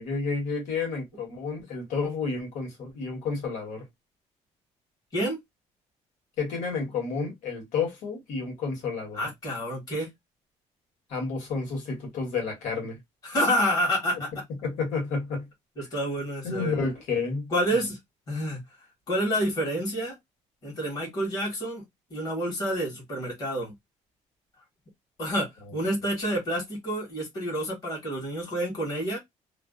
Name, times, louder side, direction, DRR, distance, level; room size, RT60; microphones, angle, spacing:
voice 1, 0.0-3.8 6.4-9.2 11.1-13.0 14.6-15.4 16.4-17.8, left 4 dB, 85° left, 1.3 m, -30 dB
voice 2, 9.1-10.1 13.2-14.3 15.8-16.7 17.5-18.0 18.3-18.6 19.1-20.2 20.6-21.8 22.1-23.7 25.2-29.2, equal, 30° left, 1.2 m, -28 dB
2.5 x 2.0 x 2.3 m
cardioid pair, 175°, 13 cm